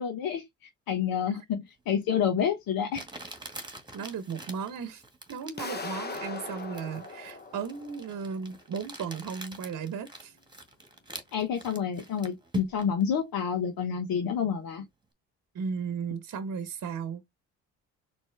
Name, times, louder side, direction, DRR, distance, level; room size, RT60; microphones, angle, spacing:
voice 1, 0.0-3.1 11.3-14.8, left 7 dB, 65° left, 1.2 m, -29 dB
Crumpling crinkling, 2.0-2.1 2.9-13.0, right 3 dB, 10° right, 1.8 m, -44 dB
voice 2, 3.9-5.0 5.3-10.4 15.5-17.2, right 6 dB, 50° right, 1.0 m, -35 dB
sound 1, 5.6-8.4, left 3 dB, 25° left, 1.0 m, -39 dB
4.3 x 2.9 x 3.5 m
hypercardioid pair, 55°, 38 cm